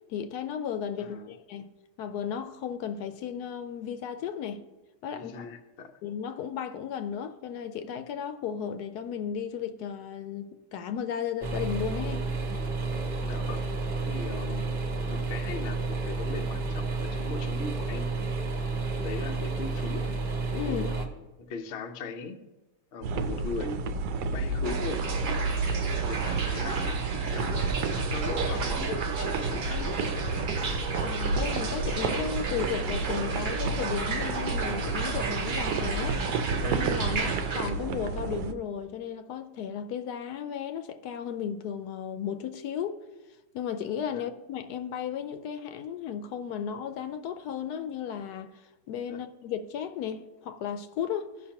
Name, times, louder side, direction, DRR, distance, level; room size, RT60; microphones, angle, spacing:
voice 1, 0.1-1.7 2.0-4.6 5.0-5.5 6.0-12.3 20.5-21.0 31.0-36.2 36.6-43.0 43.5-48.5 48.9-51.3, left 8 dB, 75° left, 1.1 m, -34 dB
voice 2, 1.0-1.3 5.2-5.9 13.2-13.7 14.1-18.1 18.9-20.1 20.6-22.4 22.9-23.9 24.3-25.1 26.0-27.6 27.9-30.3 37.2-37.3 44.1-44.3 49.1-49.2, left 4 dB, 55° left, 0.7 m, -39 dB
sound 1, 11.4-21.1, right 3 dB, 40° right, 0.9 m, -31 dB
sound 2, 23.0-38.5, right 4 dB, 85° right, 1.2 m, -30 dB
sound 3, 24.6-37.7, right 4 dB, 60° right, 0.5 m, -34 dB
14.5 x 5.7 x 2.9 m
omnidirectional pair, 1.8 m